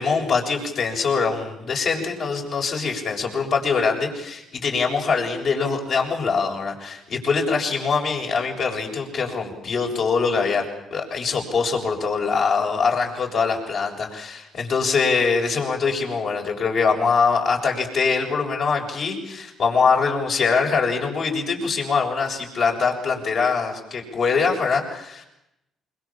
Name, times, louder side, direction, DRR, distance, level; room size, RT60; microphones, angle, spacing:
voice 1, 0.0-10.7 10.9-25.2, left 5 dB, 60° left, 1 dB, 7.2 m, -23 dB
26.0 x 24.5 x 7.5 m, 0.85 s
cardioid pair, 80°, 0 cm